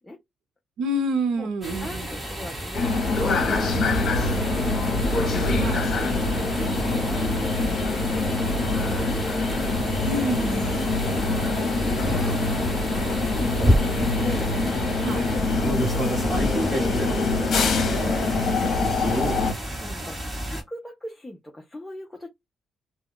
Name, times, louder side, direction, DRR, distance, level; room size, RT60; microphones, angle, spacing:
voice 1, 0.8-2.1 5.6-5.9 10.0-10.9 15.0-15.3, right 1 dB, 90° right, 0.6 m, -27 dB
sound 1, 1.6-20.6, equal, 20° right, 1.2 m, -31 dB
voice 2, 1.8-5.3 6.1-9.7 11.2-12.6 12.9-13.9 14.2-15.9 16.3-17.0 17.7-18.3 19.0-19.3 19.8-22.3, left 1 dB, 10° left, 0.5 m, -40 dB
sound 2, 2.7-19.5, left 3 dB, 55° left, 0.8 m, -24 dB
2.2 x 2.2 x 3.6 m
cardioid pair, 145°, 0 cm